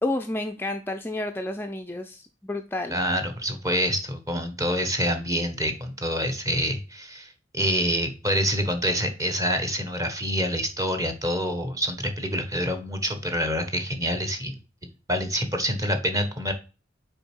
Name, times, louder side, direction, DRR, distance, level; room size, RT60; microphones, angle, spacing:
voice 1, 0.0-3.0, left 2 dB, 10° left, 5 dB, 0.4 m, -30 dB
voice 2, 2.9-14.5 15.1-16.5, equal, 20° right, 7 dB, 1.1 m, -26 dB
6.4 x 4.6 x 4.5 m, 0.33 s
head